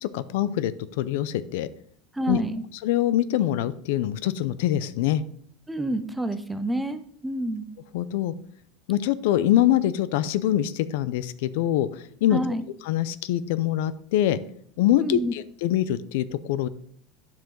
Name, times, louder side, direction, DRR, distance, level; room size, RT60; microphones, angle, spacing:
voice 1, 0.0-1.7 2.3-2.4 2.8-5.2 7.9-8.3 8.9-12.4 12.9-14.4 14.8-16.7, left 12 dB, 75° left, 16 dB, 0.4 m, -24 dB
voice 2, 2.1-2.6 5.7-7.7 12.3-12.6 15.0-15.3, right 1 dB, 5° right, 9 dB, 0.5 m, -28 dB
10.5 x 4.9 x 3.8 m, 0.63 s
supercardioid pair, 160°, 0 cm